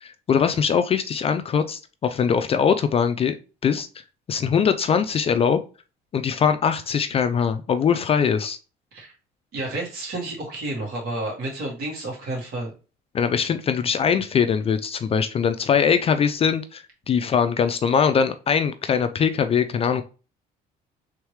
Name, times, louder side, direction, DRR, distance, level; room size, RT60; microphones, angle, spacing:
voice 1, 0.0-3.3 3.6-3.9 4.3-5.6 6.1-8.6 13.1-20.0, left 7 dB, 35° left, 9 dB, 0.3 m, -22 dB
voice 2, 9.5-12.7, right 2 dB, 65° right, -2 dB, 2.1 m, -30 dB
3.5 x 3.3 x 3.1 m, 0.34 s
cardioid pair, 110°, 17 cm